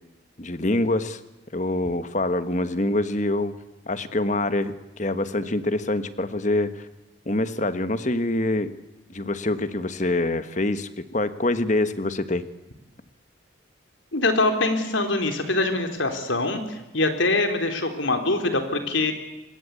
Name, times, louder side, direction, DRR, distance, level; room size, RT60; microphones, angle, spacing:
voice 1, 0.4-1.2 1.5-3.5 3.9-6.9 7.2-8.7 9.1-12.4, left 2 dB, 40° left, 12 dB, 1.4 m, -25 dB
voice 2, 14.1-19.1, left 2 dB, 75° left, 6 dB, 4.0 m, -24 dB
25.5 x 21.5 x 8.5 m, 1.0 s
head